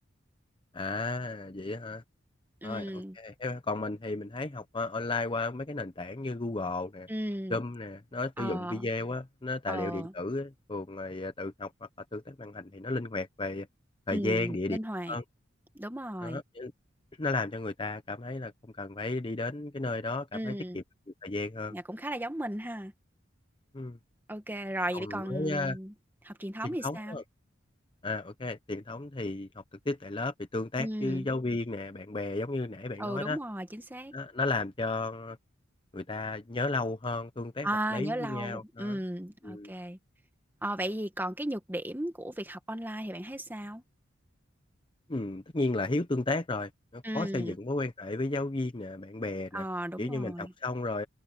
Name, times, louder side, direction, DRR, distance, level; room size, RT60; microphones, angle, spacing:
voice 1, 0.7-2.0 2.6-7.1 7.5-13.7 14.1-14.8 15.1-15.2 16.2-16.7 17.2-18.5 18.8-20.8 21.2-21.7 23.7-24.0 24.9-25.8 26.8-27.2 28.0-33.4 34.1-35.4 35.9-39.0 39.4-39.7 45.1-49.6 50.0-51.1, left 2 dB, 25° left, 0.8 m, -34 dB
voice 2, 2.6-3.2 7.1-7.6 8.4-8.9 9.7-10.1 14.1-15.2 15.7-16.4 20.3-20.8 21.7-22.9 24.3-25.9 26.2-27.2 30.8-31.3 33.0-34.1 37.6-40.0 40.6-43.8 47.0-47.6 49.5-50.5, right 1 dB, 10° right, 1.9 m, -35 dB
head